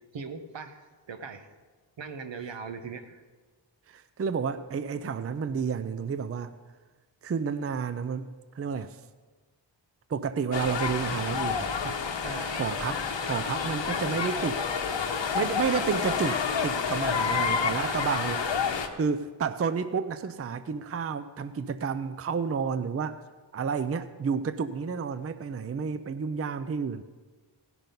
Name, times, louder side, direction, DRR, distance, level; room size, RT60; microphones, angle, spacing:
voice 1, 0.1-1.5 2.0-3.2 12.2-12.6 17.2-18.3, right 5 dB, 80° right, 8 dB, 1.0 m, -40 dB
voice 2, 3.9-6.5 7.2-9.0 10.1-12.0 12.5-14.6 15.3-18.4 19.0-23.2 23.5-27.0, right 6 dB, 35° right, 12 dB, 0.4 m, -31 dB
sound 1, 10.5-18.9, left 6 dB, 75° left, 1.0 m, -29 dB
17.0 x 6.0 x 5.3 m, 1.3 s
wide cardioid pair, 100°, 44 cm